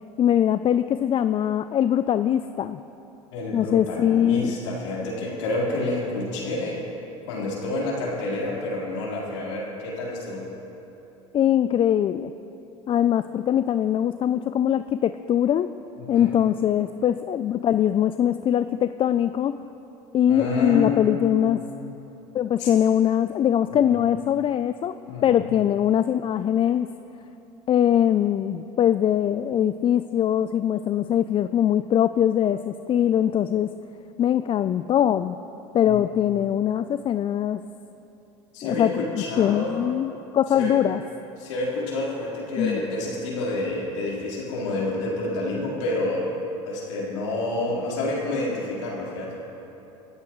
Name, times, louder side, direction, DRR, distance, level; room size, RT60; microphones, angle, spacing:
voice 1, 0.2-2.8 3.5-4.5 11.3-12.3 12.9-15.7 16.1-19.6 20.1-21.6 22.3-25.0 25.2-26.9 27.7-33.7 34.2-35.4 35.7-37.6 38.6-41.0 42.6-42.8, left 10 dB, 35° left, 11 dB, 0.4 m, -22 dB
voice 2, 3.3-6.8 7.3-10.4 16.0-16.3 20.3-21.9 22.6-22.7 23.7-24.0 25.1-25.5 35.8-36.0 38.5-39.8 40.5-40.8 41.4-46.3 46.6-49.5, left 2 dB, 85° left, -5 dB, 4.2 m, -29 dB
24.0 x 14.0 x 3.2 m, 3.0 s
hypercardioid pair, 85°, 15 cm